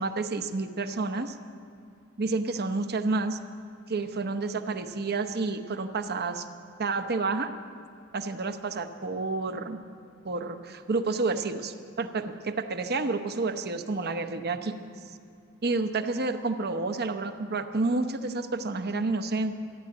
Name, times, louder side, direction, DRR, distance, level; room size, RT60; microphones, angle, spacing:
voice 1, 0.0-1.4 2.2-3.4 3.9-6.5 6.8-7.5 8.1-9.8 10.2-14.8 15.6-19.5, right 3 dB, 45° right, 8 dB, 0.8 m, -29 dB
14.5 x 10.5 x 8.8 m, 2.4 s
head